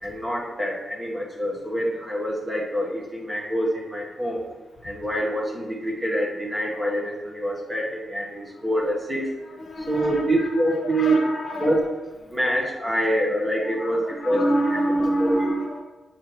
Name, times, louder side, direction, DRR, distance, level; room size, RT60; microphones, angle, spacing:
voice 1, 0.0-4.4 4.8-9.4 9.8-11.2 11.6-11.8 12.3-14.4 14.7-14.8 15.2-15.5, right 1 dB, 15° right, -3 dB, 1.2 m, -26 dB
voice 2, 9.7-10.5 10.8-11.8 13.6-15.8, right 1 dB, 40° left, 1 dB, 1.1 m, -26 dB
7.6 x 4.8 x 3.0 m, 1.1 s
wide cardioid pair, 130°, 0 cm